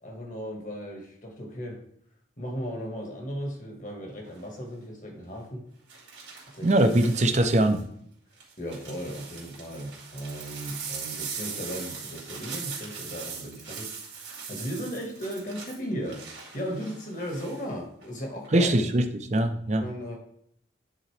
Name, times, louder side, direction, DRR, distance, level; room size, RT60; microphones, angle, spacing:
voice 1, 0.0-1.8 2.4-5.6 6.5-6.7 7.1-7.4 8.6-18.7 19.6-20.2, equal, 45° left, 1 dB, 1.6 m, -36 dB
sound 1, 4.3-4.6 5.9-7.8 8.4-17.6 18.0-18.5, right 6 dB, 85° right, 2.3 m, -40 dB
voice 2, 6.6-7.8 18.5-19.0 19.3-19.9, right 1 dB, 40° right, 7 dB, 0.6 m, -21 dB
10.0 x 3.9 x 3.3 m, 0.68 s
head